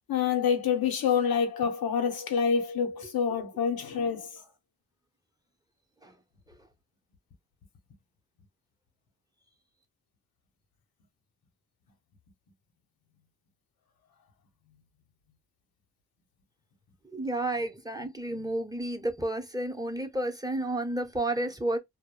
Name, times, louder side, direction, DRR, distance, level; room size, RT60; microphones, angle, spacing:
voice 1, 0.1-4.3, left 7 dB, 90° left, 0.7 m, -27 dB
voice 2, 17.1-21.8, right 1 dB, 10° right, 0.7 m, -31 dB
2.2 x 2.0 x 2.9 m
cardioid pair, 50°, 35 cm